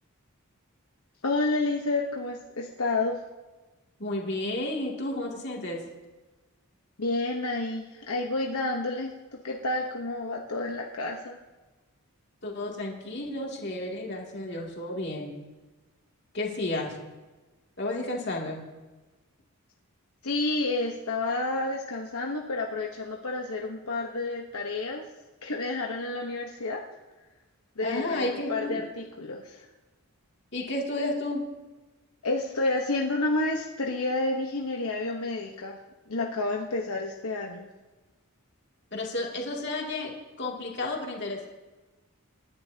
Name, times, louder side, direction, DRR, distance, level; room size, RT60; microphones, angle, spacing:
voice 1, 1.2-3.2 7.0-9.1 9.4-11.4 20.2-25.0 25.4-26.8 27.8-29.6 32.2-35.8 36.1-37.7, left 2 dB, 80° left, 0 dB, 1.1 m, -30 dB
voice 2, 4.0-5.8 12.4-15.4 16.3-17.0 17.8-18.6 27.8-28.8 30.5-31.5 38.9-41.5, left 2 dB, 50° left, -1 dB, 2.5 m, -32 dB
28.5 x 11.0 x 2.8 m, 1.2 s
head